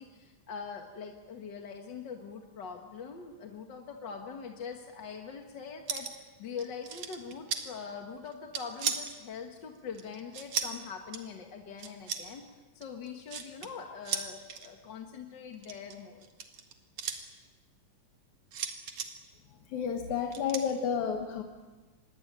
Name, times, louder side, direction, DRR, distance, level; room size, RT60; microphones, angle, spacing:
voice 1, 0.0-12.4 12.7-16.2, left 6 dB, 45° left, 3 dB, 1.7 m, -43 dB
sound 1, 5.9-6.3 6.6-7.6 8.3-9.2 10.0-10.8 11.1-11.3 11.8-12.2 12.8-13.7 14.1-14.7 15.5-17.2 18.5-19.1 20.3-20.6, right 7 dB, 65° right, 3.1 m, -35 dB
voice 2, 19.7-21.4, left 7 dB, 80° left, 4 dB, 2.7 m, -31 dB
26.0 x 21.5 x 8.8 m, 1.2 s
omnidirectional pair, 3.4 m